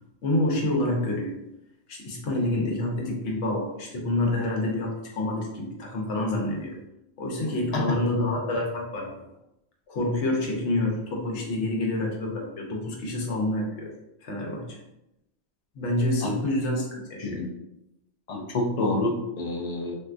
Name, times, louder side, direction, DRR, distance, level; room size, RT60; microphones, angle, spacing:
voice 1, 0.2-1.3 1.9-6.7 7.2-9.2 9.9-13.9 14.2-14.8 15.7-17.4, left 1 dB, 85° left, 0 dB, 1.0 m, -27 dB
voice 2, 18.3-20.0, left 2 dB, 60° left, 0 dB, 0.4 m, -27 dB
3.3 x 2.5 x 2.4 m, 0.89 s
omnidirectional pair, 1.2 m